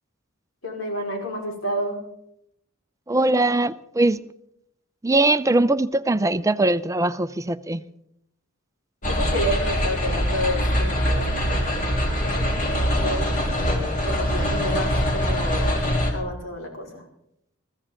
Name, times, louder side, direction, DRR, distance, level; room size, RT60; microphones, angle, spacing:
voice 1, 0.6-2.0 9.1-17.0, equal, 70° left, 4.8 m, -30 dB
voice 2, 3.1-4.3 5.0-7.8, right 2 dB, 15° right, 0.5 m, -21 dB
sound 1, 9.0-16.1, equal, 40° left, 3.4 m, -23 dB
22.5 x 15.0 x 3.8 m
head